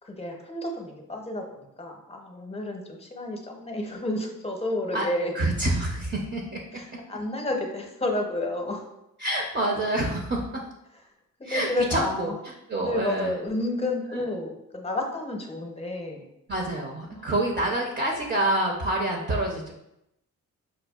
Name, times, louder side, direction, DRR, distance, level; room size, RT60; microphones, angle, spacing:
voice 1, 0.0-5.3 6.7-8.9 11.4-12.4 12.8-16.3 17.1-17.2, left 1 dB, 20° left, 2 dB, 0.7 m, -31 dB
voice 2, 5.3-6.6 9.2-10.6 11.4-12.3 12.7-13.4 14.1-14.2 16.5-19.7, right 1 dB, 30° right, -1 dB, 0.6 m, -27 dB
5.0 x 2.3 x 2.3 m, 0.84 s
cardioid pair, 70°, 34 cm